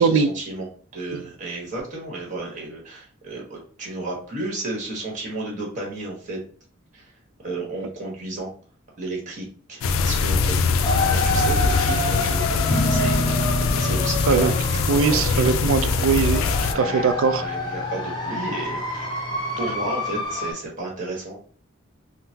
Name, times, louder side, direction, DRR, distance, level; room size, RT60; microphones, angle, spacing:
voice 1, 0.0-6.4 6.9-7.1 7.4-8.5 9.0-15.5 16.6-17.1 17.3-19.2 19.6-21.4, right 2 dB, 40° right, -2 dB, 1.2 m, -33 dB
sound 1, 9.8-16.7, left 5 dB, 80° left, 0.3 m, -23 dB
sound 2, 10.8-20.5, left 1 dB, 20° left, 0.6 m, -28 dB
sound 3, 12.7-20.2, left 1 dB, 20° right, 1.2 m, -30 dB
voice 2, 14.9-16.4 16.7-17.4, right 5 dB, 80° right, 11 dB, 0.4 m, -20 dB
3.7 x 2.0 x 2.7 m, 0.43 s
head